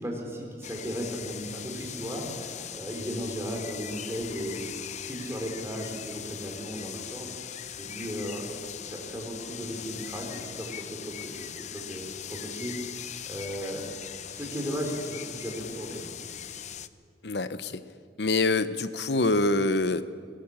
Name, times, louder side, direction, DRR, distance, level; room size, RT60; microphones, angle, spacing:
voice 1, 0.0-4.7 5.0-7.3 7.8-8.4 8.8-13.9 14.3-16.1, equal, 15° right, 0 dB, 4.1 m, -36 dB
sound 1, 0.6-16.9, left 9 dB, 40° left, 0.6 m, -40 dB
voice 2, 17.2-17.8 18.2-20.0, left 2 dB, 70° left, 13 dB, 0.9 m, -25 dB
22.5 x 17.0 x 7.4 m, 2.1 s
head